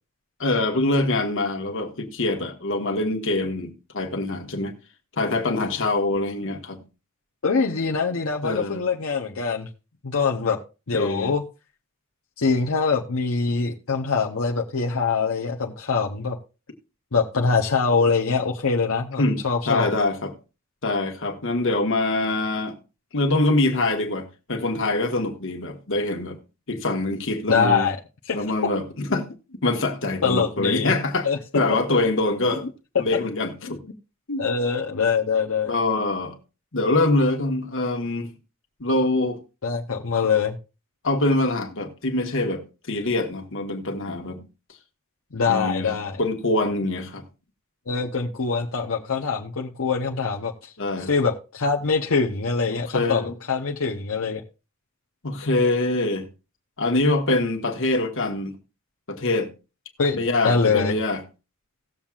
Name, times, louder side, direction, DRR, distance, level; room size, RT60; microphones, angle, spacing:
voice 1, 0.4-4.7 5.2-6.8 8.4-8.8 10.9-11.3 19.2-19.4 19.7-20.3 20.8-22.8 23.1-26.4 26.7-27.9 28.3-29.3 29.6-31.3 31.5-32.7 33.0-33.8 34.3-34.4 35.7-36.3 36.7-38.3 38.8-39.4 41.0-44.4 45.4-47.2 50.8-51.1 52.9-53.3 55.2-56.2 56.8-58.5 59.1-59.5 60.1-61.2, left 2 dB, 65° left, 1.5 m, -24 dB
voice 2, 7.4-9.7 10.0-10.6 10.9-11.4 12.4-16.4 17.1-19.9 27.5-28.0 28.3-28.4 30.2-31.0 31.2-31.4 33.6-33.7 34.4-35.7 39.6-40.6 45.3-46.2 47.9-50.7 51.1-54.4 60.0-60.2 60.4-60.9, left 5 dB, 85° left, 0.9 m, -23 dB
18.0 x 7.3 x 2.4 m
head